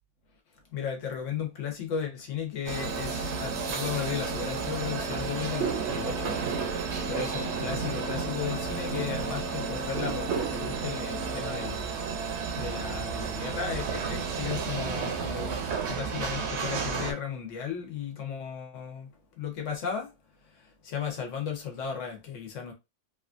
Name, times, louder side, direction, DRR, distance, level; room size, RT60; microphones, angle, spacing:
voice 1, 0.7-6.4 7.1-15.6 15.9-19.1 19.4-20.1 20.5-22.7, left 7 dB, 75° left, 1.2 m, -35 dB
sound 1, 2.7-17.1, right 5 dB, 65° right, 0.8 m, -32 dB
3.2 x 2.4 x 2.4 m
omnidirectional pair, 1.3 m